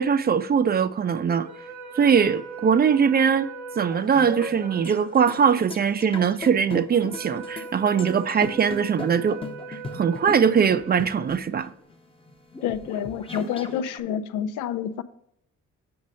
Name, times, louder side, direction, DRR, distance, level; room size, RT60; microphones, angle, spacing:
voice 1, 0.0-1.5 2.0-3.5 3.8-9.4 9.7-11.7, right 7 dB, 35° right, 0.4 m, -21 dB
sound 1, 1.3-11.7, right 4 dB, 65° right, 1.0 m, -40 dB
sound 2, 3.9-14.0, left 3 dB, 20° left, 0.7 m, -39 dB
voice 2, 12.6-15.0, left 9 dB, 85° left, 0.6 m, -28 dB
7.8 x 5.2 x 4.1 m
cardioid pair, 90°, 30 cm